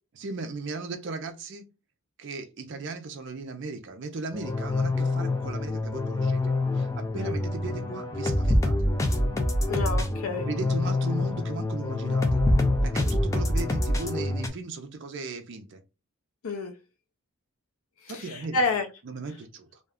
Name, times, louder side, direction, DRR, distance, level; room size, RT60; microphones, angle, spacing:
voice 1, 0.2-1.6 2.2-8.8 10.4-12.4 12.8-15.8 18.1-18.7 19.0-19.8, right 3 dB, 55° right, 0.4 m, -37 dB
sound 1, 4.3-14.5, left 1 dB, 15° left, 0.3 m, -26 dB
voice 2, 9.7-10.5 16.4-16.7 18.0-18.9, left 3 dB, 80° left, 0.4 m, -29 dB
2.4 x 2.2 x 3.5 m
head